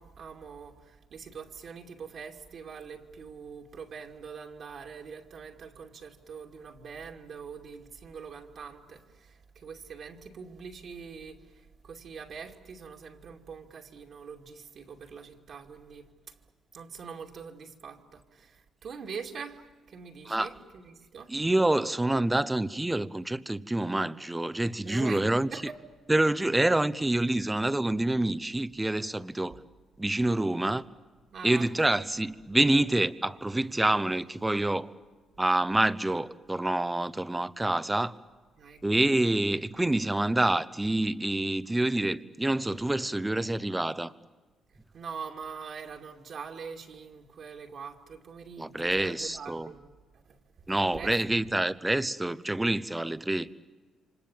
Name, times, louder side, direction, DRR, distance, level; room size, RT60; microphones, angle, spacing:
voice 1, 0.0-16.3 16.7-21.3 24.8-25.8 31.3-32.1 38.6-38.8 44.9-49.9 50.2-50.4 50.9-51.1, right 6 dB, 60° right, 2.7 m, -43 dB
voice 2, 21.3-25.5 26.1-29.6 30.0-30.8 31.4-34.9 35.4-38.1 38.8-44.1 48.6-49.7 50.7-53.5, right 1 dB, 10° right, 0.9 m, -27 dB
28.5 x 25.5 x 7.4 m
cardioid pair, 90°, 0 cm